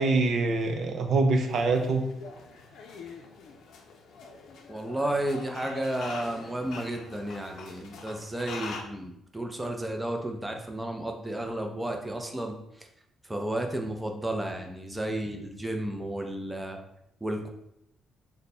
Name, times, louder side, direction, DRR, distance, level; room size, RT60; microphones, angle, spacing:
voice 1, 0.0-2.0, right 3 dB, 60° right, 4 dB, 0.4 m, -24 dB
sound 1, 1.4-8.8, left 4 dB, 75° left, 0.5 m, -43 dB
voice 2, 4.7-12.5 13.3-16.8 17.2-17.5, right 1 dB, 10° right, 3 dB, 0.5 m, -32 dB
3.2 x 2.2 x 4.1 m, 0.77 s
cardioid pair, 90°, 0 cm